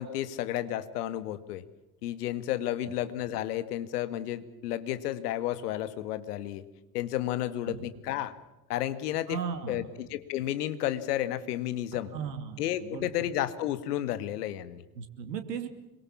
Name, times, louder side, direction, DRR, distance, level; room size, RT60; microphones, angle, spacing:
voice 1, 0.0-1.6 2.0-6.6 6.9-8.3 8.7-9.4 9.7-12.1 12.6-14.8, left 13 dB, 70° left, 12 dB, 1.9 m, -32 dB
voice 2, 7.4-7.9 9.3-9.9 12.1-13.1 15.0-15.7, right 7 dB, 80° right, 8 dB, 2.6 m, -37 dB
27.0 x 23.0 x 7.2 m, 0.99 s
figure-of-eight pair, 65°, 48 cm